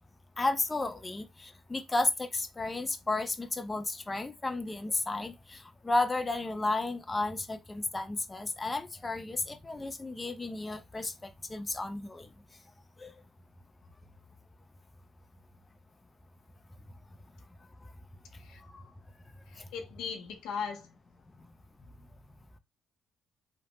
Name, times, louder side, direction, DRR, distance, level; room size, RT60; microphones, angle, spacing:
voice 1, 0.4-12.3 13.0-13.1 18.7-18.8, left 2 dB, 20° left, 0.4 m, -33 dB
voice 2, 19.5-20.9, left 6 dB, 90° left, 0.6 m, -38 dB
3.0 x 2.0 x 2.8 m
cardioid pair, 90°, 0 cm